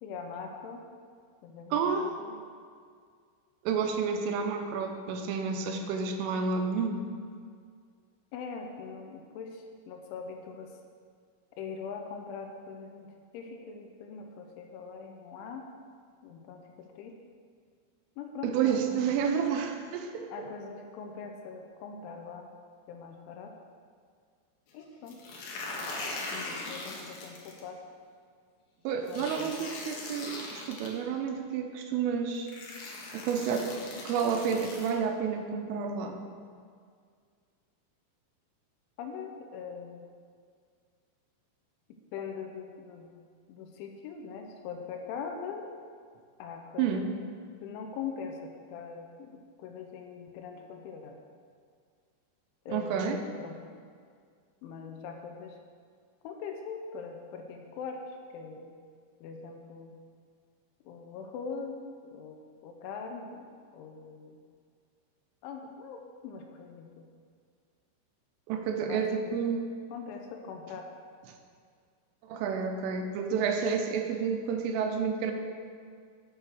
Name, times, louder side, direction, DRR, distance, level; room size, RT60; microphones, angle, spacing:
voice 1, 0.0-0.8 1.4-2.4 8.3-10.8 11.6-15.7 16.2-17.2 18.2-19.1 20.3-22.5 22.9-23.5 24.7-25.2 26.3-27.8 29.0-29.5 39.0-40.0 42.1-43.1 43.5-45.7 46.4-47.0 47.6-51.2 52.7-53.1 53.4-53.5 54.6-55.6 56.2-58.7 59.2-59.9 60.9-62.4 62.6-63.5 63.7-64.4 65.4-67.1 68.8-69.1 69.9-70.9, left 5 dB, 85° left, 3 dB, 3.1 m, -42 dB
voice 2, 1.7-2.2 3.6-7.0 18.4-20.3 28.8-32.5 33.1-36.2 46.8-47.1 52.7-53.2 68.5-69.7 72.2-75.3, right 6 dB, 90° right, 5 dB, 3.3 m, -30 dB
sound 1, 25.1-27.6 29.1-30.9 31.9-32.0 32.5-34.9, left 2 dB, 65° left, 2.5 m, -40 dB
9.5 x 6.6 x 6.3 m, 2.1 s
omnidirectional pair, 5.7 m